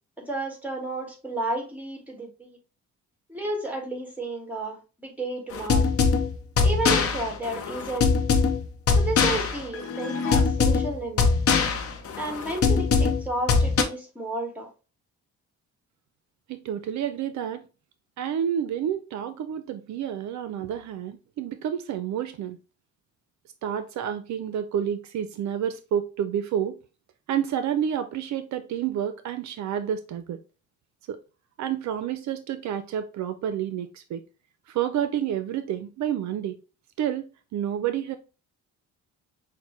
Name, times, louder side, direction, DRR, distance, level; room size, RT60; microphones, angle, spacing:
voice 1, 0.2-2.6 3.3-5.9 6.6-8.1 8.9-11.3 12.2-14.7, right 2 dB, 5° right, 1.5 m, -32 dB
sound 1, 5.5-13.8, left 5 dB, 50° left, 0.7 m, -22 dB
voice 2, 16.5-17.7 18.2-22.6 23.6-26.8 27.3-30.4 31.1-31.2 31.6-34.2 34.7-36.6 37.0-38.2, right 9 dB, 65° right, 0.5 m, -29 dB
5.8 x 2.1 x 3.0 m
cardioid pair, 90°, 30 cm